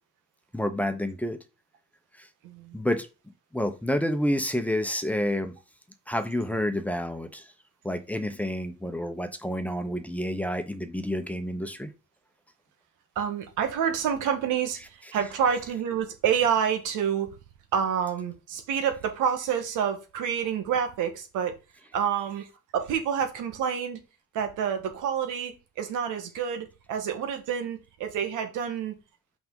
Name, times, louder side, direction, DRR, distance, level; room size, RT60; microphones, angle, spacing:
voice 1, 0.5-1.4 2.2-2.3 2.7-3.1 3.5-5.5 6.1-7.4 7.8-11.9, left 1 dB, 5° left, 1.0 m, -29 dB
voice 2, 2.4-2.8 13.1-17.3 17.7-21.6 21.9-22.5 22.7-24.0 24.3-28.9, right 8 dB, 90° right, 1.5 m, -28 dB
5.7 x 5.2 x 3.8 m
cardioid pair, 90°, 30 cm